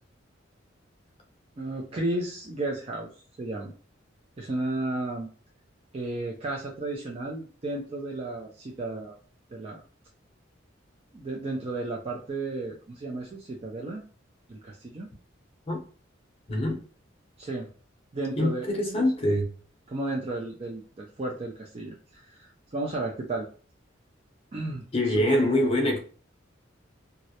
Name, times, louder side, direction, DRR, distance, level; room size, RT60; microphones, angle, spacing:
voice 1, 1.6-3.1 3.4-3.7 4.4-5.3 5.9-9.2 9.5-9.8 11.1-14.0 14.5-15.1 17.4-17.7 18.1-18.7 18.9-19.1 19.9-23.5 24.5-24.8 25.1-25.9, right 2 dB, 30° right, 0.4 m, -33 dB
voice 2, 16.5-16.8 18.4-19.5 24.9-26.0, left 1 dB, 30° left, 0.7 m, -24 dB
2.3 x 2.1 x 2.7 m
head